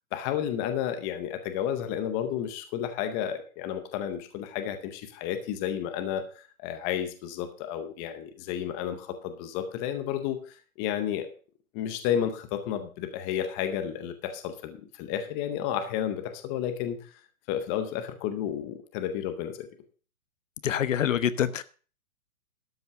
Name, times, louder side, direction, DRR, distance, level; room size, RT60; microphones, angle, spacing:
voice 1, 0.1-10.4 10.8-11.3 11.7-17.1 17.5-19.7, left 9 dB, 15° left, 0.6 m, -31 dB
voice 2, 20.6-21.6, left 9 dB, 65° left, 1.0 m, -25 dB
12.5 x 5.8 x 6.6 m
hypercardioid pair, 150°, 42 cm